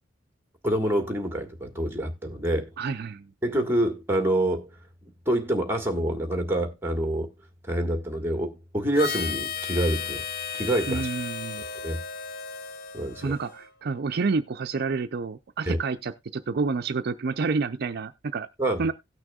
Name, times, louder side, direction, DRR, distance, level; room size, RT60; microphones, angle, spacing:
voice 1, 0.6-2.7 3.4-4.7 5.2-7.3 7.7-10.2 10.5-11.1 11.8-12.0 12.9-13.3 15.7-15.8 18.6-18.8, right 1 dB, 10° right, 1.6 m, -26 dB
voice 2, 2.8-3.3 10.9-11.6 13.2-18.5 18.8-18.9, right 4 dB, 55° right, 0.5 m, -29 dB
Harmonica, 8.9-13.7, left 6 dB, 50° left, 0.6 m, -34 dB
17.5 x 6.3 x 2.3 m
head